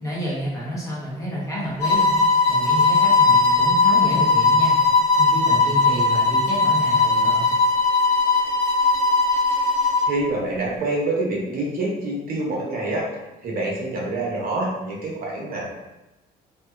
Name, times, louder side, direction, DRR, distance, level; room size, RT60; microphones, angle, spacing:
voice 1, 0.0-4.8 5.2-7.5, equal, 20° left, -6 dB, 1.0 m, -29 dB
sound 1, 1.8-10.2, left 3 dB, 90° left, 1.0 m, -18 dB
voice 2, 10.1-13.0 13.4-15.6, right 2 dB, 60° right, -3 dB, 0.8 m, -26 dB
2.9 x 2.2 x 2.4 m, 0.98 s
cardioid pair, 120°, 17 cm